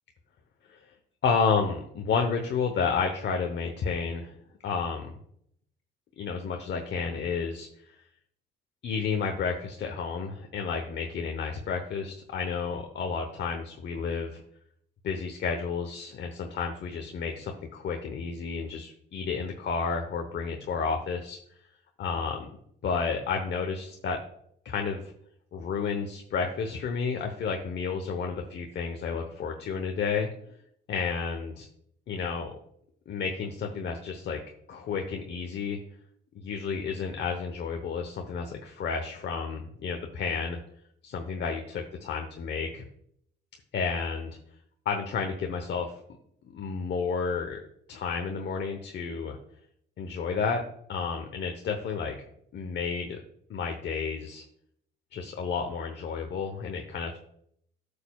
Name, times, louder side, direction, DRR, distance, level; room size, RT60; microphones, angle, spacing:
voice 1, 1.2-4.4 4.6-5.1 6.2-7.9 8.8-14.4 15.0-21.4 22.0-22.5 22.8-24.2 24.6-25.1 25.5-30.6 30.9-31.7 32.1-32.5 33.1-34.4 34.7-35.8 36.3-40.6 41.0-42.8 43.7-44.4 44.8-45.9 46.5-47.6 47.9-49.4 50.0-50.6 50.9-52.1 52.5-53.2 53.5-54.4 55.1-57.2, left 5 dB, 60° left, 4 dB, 1.0 m, -31 dB
11.5 x 6.7 x 2.4 m, 0.70 s
cardioid pair, 90°, 20 cm